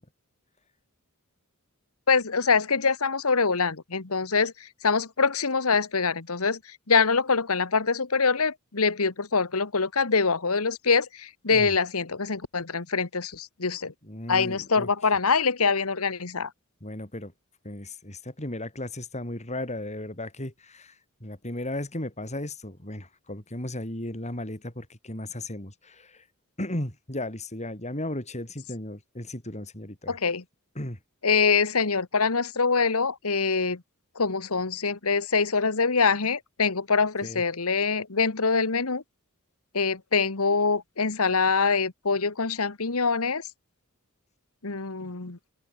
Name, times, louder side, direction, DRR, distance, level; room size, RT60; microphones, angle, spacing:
voice 1, 2.1-13.9 14.3-16.5 30.1-30.4 31.2-33.8 34.1-39.0 39.7-43.5 44.6-45.4, left 4 dB, 75° left, 1.6 m, -24 dB
voice 2, 14.0-14.9 16.8-17.3 17.6-20.9 21.2-26.2 26.6-30.2 30.8-31.0 37.2-37.4, left 1 dB, 30° left, 6.0 m, -35 dB
open air
head